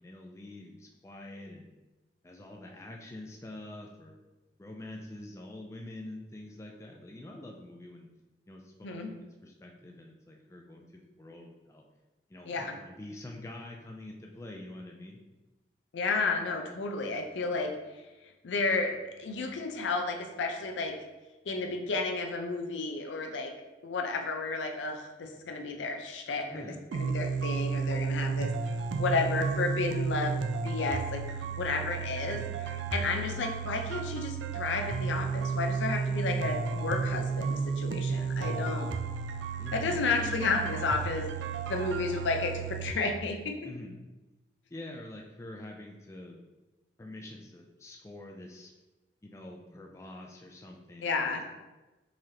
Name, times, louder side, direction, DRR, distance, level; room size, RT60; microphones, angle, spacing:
voice 1, 0.0-1.7 2.2-4.2 4.6-8.1 8.5-11.8 12.3-15.2 26.5-26.9 32.3-32.6 39.6-40.6 43.6-44.0 44.7-46.4 47.0-48.7 49.2-51.5, left 1 dB, 15° left, 0 dB, 0.3 m, -46 dB
voice 2, 8.8-9.1 12.5-12.7 15.9-17.7 18.4-21.0 21.5-23.5 23.8-30.4 30.6-38.9 39.7-41.3 41.7-43.5 51.0-51.5, left 3 dB, 85° left, 4 dB, 0.5 m, -32 dB
sound 1, 26.9-42.9, right 5 dB, 80° right, 0.3 m, -33 dB
3.9 x 3.1 x 2.7 m, 1.1 s
head